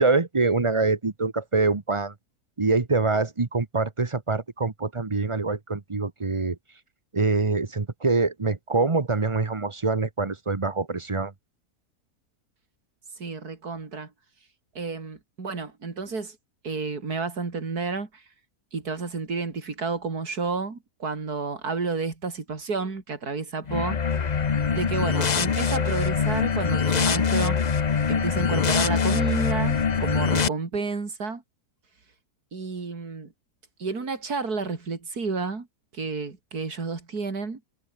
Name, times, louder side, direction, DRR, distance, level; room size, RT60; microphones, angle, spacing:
voice 1, 0.0-2.1 2.6-6.6 7.1-11.3, right 3 dB, 25° right, 0.9 m, -25 dB
voice 2, 13.2-14.1 14.8-16.4 16.6-18.2 18.7-24.0 24.7-27.8 28.1-31.4 32.5-33.3 33.8-35.7 35.9-37.6, right 4 dB, 70° right, 3.7 m, -31 dB
sound 1, 23.7-30.5, left 6 dB, 35° left, 0.7 m, -23 dB
omnidirectional pair, 1.7 m